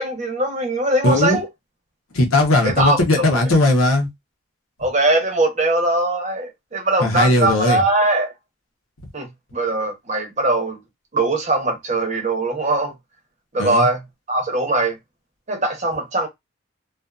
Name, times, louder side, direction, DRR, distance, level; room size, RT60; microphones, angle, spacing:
voice 1, 0.0-1.5 2.6-3.5 4.8-8.3 9.1-10.8 11.1-12.9 13.5-14.0 14.3-15.0 15.5-16.3, right 2 dB, 35° right, 0.8 m, -21 dB
voice 2, 1.0-1.4 2.1-4.1 7.0-7.8 13.6-13.9, left 2 dB, 80° left, 0.9 m, -17 dB
2.6 x 2.5 x 2.3 m
head